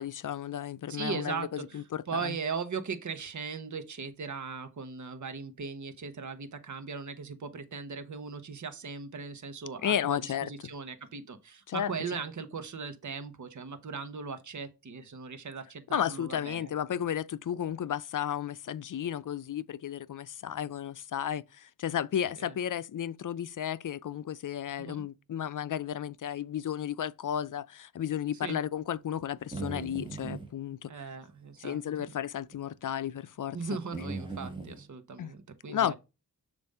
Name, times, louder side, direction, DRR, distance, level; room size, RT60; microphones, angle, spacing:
voice 1, 0.0-2.4 9.8-10.5 11.7-11.9 15.9-30.9 31.6-33.6 35.2-35.3 35.7-35.9, left 9 dB, 60° left, 0.5 m, -33 dB
voice 2, 0.9-16.7 22.4-22.5 24.8-25.0 28.4-28.6 30.9-32.1 33.5-35.9, right 5 dB, 55° right, 0.9 m, -38 dB
sound 1, 29.2-30.5 31.9-32.1 32.5-32.6 33.9-34.8, right 3 dB, 15° right, 1.5 m, -38 dB
6.9 x 2.6 x 5.4 m
cardioid pair, 50°, 36 cm